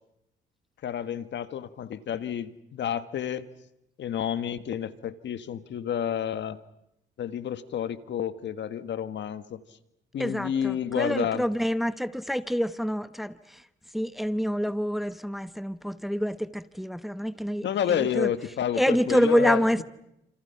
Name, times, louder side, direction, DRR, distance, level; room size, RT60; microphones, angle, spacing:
voice 1, 0.8-3.5 4.0-6.6 7.2-9.6 10.1-11.5 17.6-19.6, left 9 dB, 65° left, 12 dB, 1.6 m, -30 dB
voice 2, 10.2-13.7 13.9-18.3 18.7-19.8, equal, ahead, 13 dB, 1.0 m, -27 dB
29.5 x 27.5 x 5.8 m, 0.83 s
cardioid pair, 90°, 20 cm